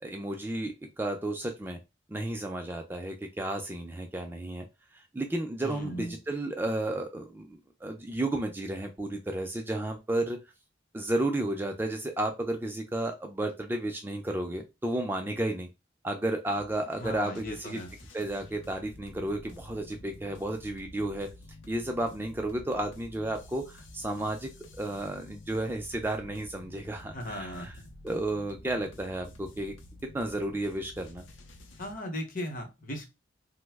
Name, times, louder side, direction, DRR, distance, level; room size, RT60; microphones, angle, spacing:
voice 1, 0.0-1.8 2.1-4.6 4.9-10.4 10.9-15.7 16.0-17.8 18.1-21.3 21.7-24.5 24.8-27.7 28.0-29.7 30.1-31.3, right 1 dB, 10° right, 3 dB, 0.3 m, -32 dB
voice 2, 5.6-6.2 17.0-17.9 27.1-27.7 31.8-33.0, left 1 dB, 45° left, 4 dB, 0.8 m, -37 dB
sound 1, 16.5-31.9, left 1 dB, 85° left, 0.6 m, -50 dB
3.0 x 2.0 x 3.3 m, 0.25 s
head